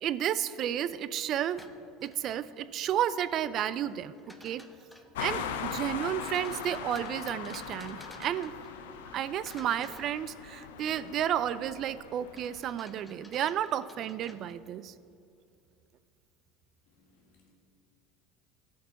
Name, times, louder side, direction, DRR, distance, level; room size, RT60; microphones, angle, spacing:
voice 1, 0.0-1.7 2.0-4.7 5.2-8.5 9.1-14.9, right 10 dB, 50° right, 16 dB, 0.3 m, -32 dB
sound 1, 1.4-2.9 3.9-5.2 6.3-9.1 9.4-10.8 12.3-14.9, left 1 dB, 5° left, 0.7 m, -54 dB
sound 2, 5.1-12.6, left 7 dB, 90° left, 0.6 m, -40 dB
voice 2, 16.9-17.5, left 3 dB, 75° left, -1 dB, 2.0 m, -67 dB
15.0 x 5.2 x 4.0 m, 2.4 s
supercardioid pair, 110°, 0 cm